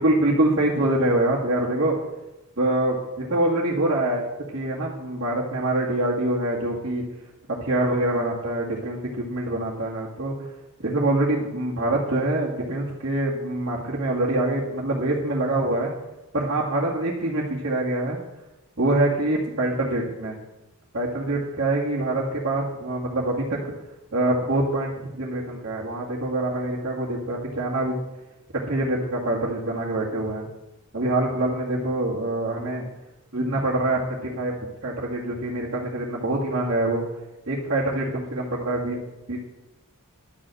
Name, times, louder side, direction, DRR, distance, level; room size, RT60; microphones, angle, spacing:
voice 1, 0.0-2.0 2.6-4.2 4.5-7.0 7.6-10.5 10.8-15.9 16.3-18.2 18.8-20.4 20.9-23.7 24.1-27.9 28.7-30.5 30.9-32.8 33.3-37.0 37.5-39.0 39.3-39.4, right 1 dB, 55° right, -8 dB, 2.1 m, -25 dB
11.5 x 6.3 x 7.6 m, 1.0 s
head